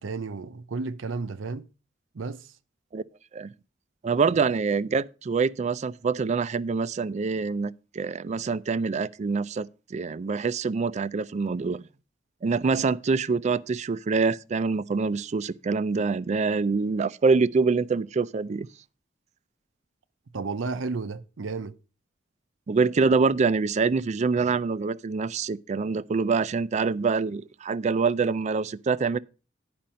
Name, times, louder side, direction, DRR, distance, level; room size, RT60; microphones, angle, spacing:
voice 1, 0.0-1.7 2.1-2.5 20.3-21.7, right 4 dB, 80° right, 0.6 m, -32 dB
voice 2, 4.0-11.8 12.4-18.7 22.7-29.2, right 4 dB, 40° right, 0.4 m, -25 dB
10.5 x 5.2 x 5.6 m
head